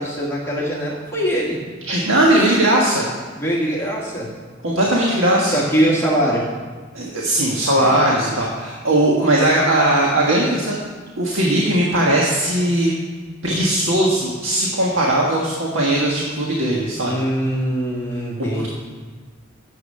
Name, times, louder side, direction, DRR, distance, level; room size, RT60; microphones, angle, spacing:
voice 1, 0.0-1.6 3.4-4.3 5.5-6.4 7.8-8.0 17.0-18.7, right 1 dB, 15° left, -6 dB, 1.5 m, -22 dB
voice 2, 1.9-3.1 4.6-5.5 6.9-10.7 11.2-12.9 13.4-17.1 18.4-18.7, right 1 dB, 80° right, -3 dB, 1.5 m, -18 dB
9.7 x 7.4 x 6.7 m, 1.5 s
head